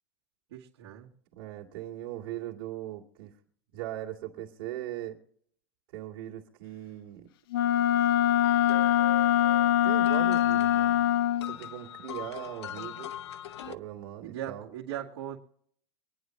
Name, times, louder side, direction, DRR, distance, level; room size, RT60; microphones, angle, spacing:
voice 1, 0.5-1.1 14.2-15.4, right 11 dB, 70° right, -5 dB, 2.1 m, -39 dB
voice 2, 1.3-3.3 3.7-5.2 5.9-7.3 9.8-11.0 11.4-13.1 13.6-14.7, right 13 dB, 55° right, -2 dB, 2.2 m, -39 dB
Wind instrument woodwind instrument, 7.5-11.6, left 11 dB, 60° left, 0.6 m, -23 dB
sound 1, 8.4-13.7, left 11 dB, 85° left, 0.9 m, -42 dB
25.5 x 9.9 x 3.2 m, 0.65 s
supercardioid pair, 170°, 14 cm